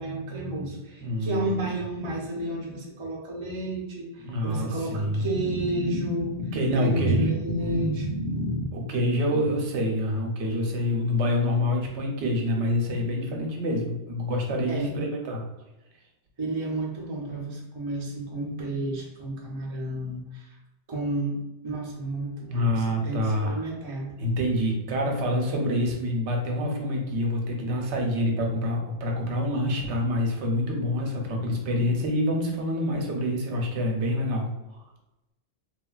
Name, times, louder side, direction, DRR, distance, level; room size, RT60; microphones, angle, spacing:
voice 1, 0.0-8.7 14.7-15.0 16.4-20.5 20.9-24.2, right 1 dB, 40° right, -1 dB, 0.5 m, -30 dB
voice 2, 1.0-1.4 4.2-5.3 6.5-7.2 8.7-15.4 22.5-23.6 24.2-34.8, left 1 dB, 80° right, 1 dB, 0.9 m, -26 dB
3.2 x 2.3 x 2.3 m, 0.95 s
omnidirectional pair, 1.2 m